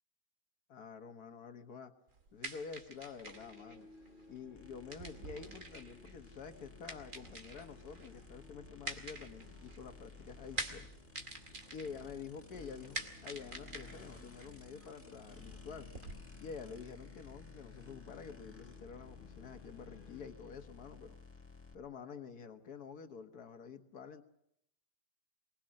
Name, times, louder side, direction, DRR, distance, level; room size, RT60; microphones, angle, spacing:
voice 1, 0.7-1.9 2.3-3.9 4.3-10.9 11.7-15.9 16.4-21.2 21.7-24.2, left 6 dB, 90° left, 7 dB, 1.9 m, -48 dB
sound 1, 2.1-16.1, right 3 dB, 60° right, 2.8 m, -48 dB
sound 2, 3.3-20.3, left 5 dB, 35° left, 1.3 m, -59 dB
sound 3, 4.5-21.7, left 4 dB, 10° left, 1.7 m, -56 dB
24.0 x 20.5 x 6.5 m, 0.76 s
omnidirectional pair, 1.6 m